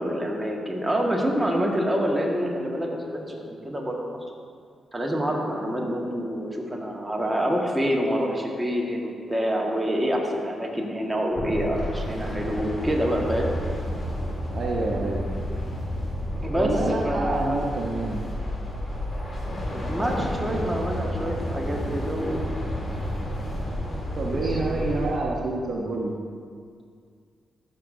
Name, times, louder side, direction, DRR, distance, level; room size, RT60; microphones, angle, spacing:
voice 1, 0.0-4.2 4.9-13.5 16.4-17.6 19.7-22.5 24.3-24.6, equal, 15° right, -1 dB, 1.7 m, -27 dB
sound 1, 11.3-25.2, equal, 35° left, 2.2 m, -31 dB
voice 2, 14.5-15.3 16.5-18.2 20.5-20.7 24.2-26.1, right 3 dB, 60° right, -2 dB, 0.9 m, -28 dB
13.0 x 6.4 x 2.7 m, 2.1 s
hypercardioid pair, 40°, 0 cm